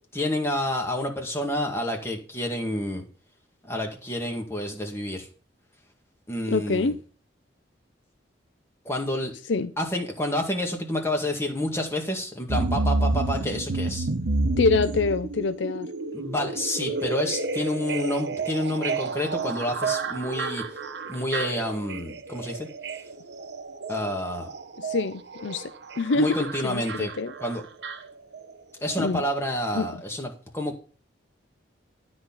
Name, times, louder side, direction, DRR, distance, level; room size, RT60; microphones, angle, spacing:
voice 1, 0.1-3.0 3.6-5.3 6.3-6.9 8.9-9.3 9.8-14.1 16.1-20.6 21.1-22.7 23.9-24.5 26.1-27.1 27.4-27.6 28.8-30.8, left 1 dB, 15° left, 1.9 m, -29 dB
voice 2, 6.5-7.0 9.5-9.7 14.6-15.9 24.8-27.3 29.0-29.2 29.7-29.9, left 4 dB, 80° left, 0.5 m, -26 dB
sound 1, 12.5-28.6 28.9-29.0, right 3 dB, 65° right, 0.9 m, -30 dB
12.5 x 4.2 x 7.3 m
head